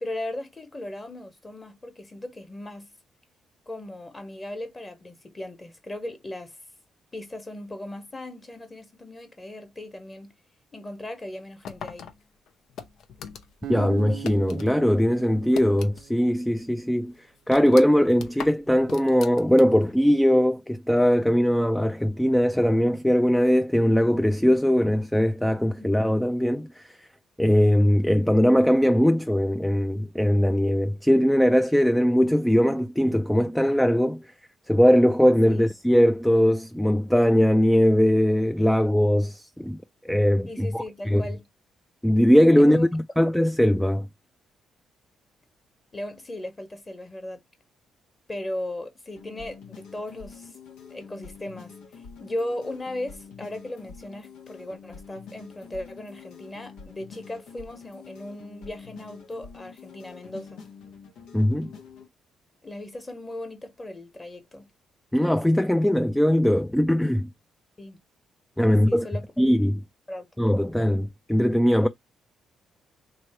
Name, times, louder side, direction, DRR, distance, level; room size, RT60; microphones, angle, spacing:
voice 1, 0.0-2.9 3.7-6.5 7.1-10.3 10.7-12.1 25.7-25.9 35.5-35.7 40.5-41.4 42.6-42.9 45.9-47.4 48.3-50.5 50.9-51.8 52.2-60.6 62.6-64.7 67.8-68.0 68.7-69.2 70.1-70.4, left 1 dB, 25° left, 1.3 m, -37 dB
sound 1, 11.6-14.7 15.0-16.3 16.6-16.7 17.1-19.9, left 7 dB, 70° left, 0.7 m, -40 dB
Acoustic guitar, 13.6-16.8, right 12 dB, 75° right, 0.4 m, -41 dB
voice 2, 13.7-17.1 17.5-26.9 27.4-34.2 34.7-41.2 42.0-44.1 61.3-61.7 65.1-67.3 68.6-69.1 69.4-69.8 70.4-71.9, equal, 5° left, 0.3 m, -20 dB
sound 2, 49.2-62.1, left 6 dB, 90° left, 1.0 m, -46 dB
3.1 x 2.6 x 4.4 m
cardioid pair, 90°, 0 cm